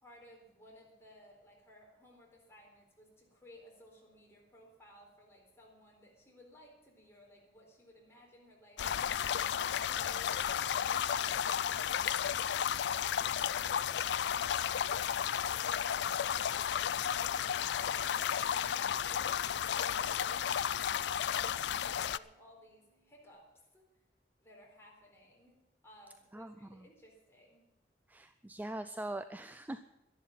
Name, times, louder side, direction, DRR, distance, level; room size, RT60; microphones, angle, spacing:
voice 1, 0.0-14.7 15.4-23.8 24.4-25.6 25.8-27.7, left 1 dB, 15° left, -2 dB, 4.0 m, -59 dB
sound 1, 8.8-22.2, left 9 dB, 70° left, 0.4 m, -33 dB
Bass guitar, 17.0-23.3, right 2 dB, 35° right, 1.4 m, -69 dB
voice 2, 26.3-26.9 28.1-29.8, right 1 dB, 10° right, 11 dB, 0.4 m, -42 dB
12.0 x 11.0 x 7.4 m, 0.97 s
head